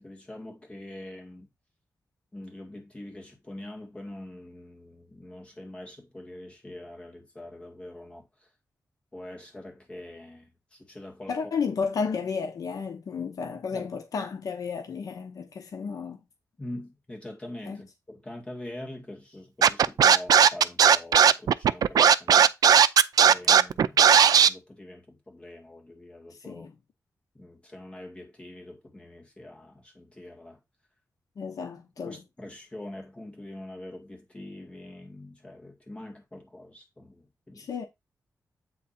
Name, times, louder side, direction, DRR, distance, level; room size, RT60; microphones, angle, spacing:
voice 1, 0.0-1.5 2.3-8.5 9.1-11.4 13.7-13.9 16.6-22.5 23.2-24.1 24.5-26.7 27.3-30.6 32.0-37.7, left 1 dB, 15° left, 2.1 m, -44 dB
voice 2, 11.3-16.2 17.7-17.8 26.4-26.8 31.4-32.2 37.6-37.8, left 5 dB, 65° left, 1.0 m, -32 dB
Scratching (performance technique), 19.6-24.5, right 8 dB, 80° right, 0.4 m, -16 dB
8.4 x 3.7 x 4.3 m
wide cardioid pair, 155°, 6 cm